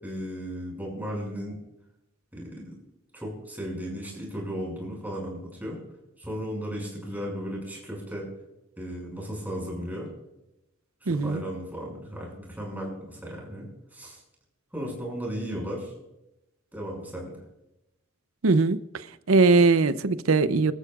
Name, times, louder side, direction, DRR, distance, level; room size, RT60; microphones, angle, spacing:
voice 1, 0.0-1.6 2.3-2.8 3.1-5.8 6.2-8.3 8.8-10.1 11.0-14.2 14.7-15.9 16.7-17.3, equal, 10° right, 6.1 m, -35 dB
voice 2, 11.1-11.4 18.4-18.8 19.3-20.7, right 3 dB, 80° right, 0.7 m, -20 dB
25.5 x 13.5 x 2.5 m
head